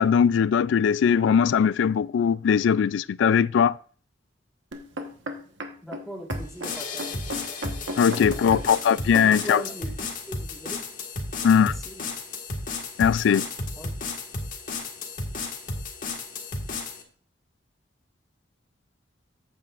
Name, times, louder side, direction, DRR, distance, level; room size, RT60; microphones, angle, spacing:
voice 1, 0.0-3.8 8.0-9.6 11.4-11.7 13.0-13.5, left 7 dB, 70° left, 0.3 m, -20 dB
sound 1, 4.7-9.6 10.3-10.4, equal, 80° right, 1.3 m, -35 dB
voice 2, 5.8-7.2 8.3-8.6 9.2-9.9 10.3-10.9 11.4-12.0 13.8-13.9, equal, ahead, 1.7 m, -40 dB
sound 2, 6.3-17.0, left 3 dB, 45° left, 1.7 m, -33 dB
13.5 x 8.9 x 2.5 m
head